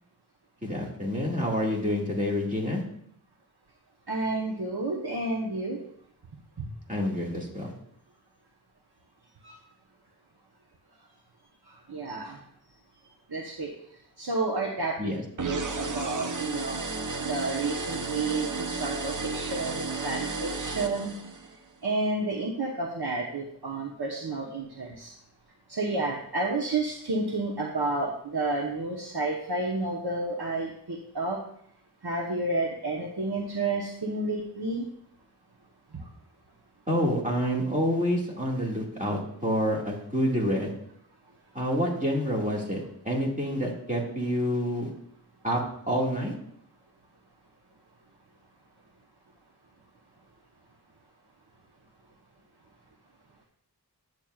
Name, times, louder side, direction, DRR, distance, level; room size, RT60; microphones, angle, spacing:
voice 1, 0.6-2.8 6.9-7.7 15.0-15.2 36.9-40.7 41.5-44.9 45.4-45.6 45.9-46.3, equal, 20° right, -3 dB, 2.1 m, -28 dB
voice 2, 4.1-5.8 6.6-6.7 9.4-9.5 11.9-12.4 13.3-13.7 14.2-15.1 15.4-16.8 17.2-21.1 21.8-25.1 25.7-31.4 32.0-34.9, right 2 dB, 75° right, -1 dB, 1.0 m, -30 dB
sound 1, 15.4-21.6, right 3 dB, 50° right, 0.7 m, -33 dB
10.0 x 8.0 x 2.4 m, 0.68 s
wide cardioid pair, 50°, 39 cm